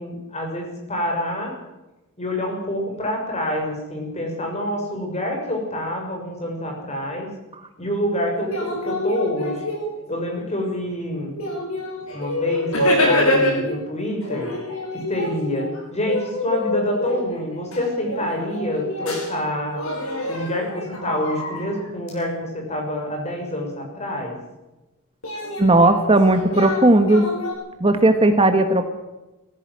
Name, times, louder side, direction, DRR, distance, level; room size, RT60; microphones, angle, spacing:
voice 1, 0.0-1.6 2.2-7.3 7.8-9.6 10.1-11.3 12.1-14.5 14.9-19.8 20.3-24.3, left 1 dB, 30° left, 2 dB, 6.5 m, -27 dB
sound 1, 8.4-10.2 10.9-11.0 11.4-13.8 14.2-19.4 19.7-22.1 25.2-27.5, left 1 dB, 85° left, 7.1 m, -26 dB
voice 2, 25.6-27.3 27.8-28.8, right 2 dB, 25° right, 8 dB, 1.3 m, -16 dB
18.5 x 15.5 x 9.5 m, 1.0 s
head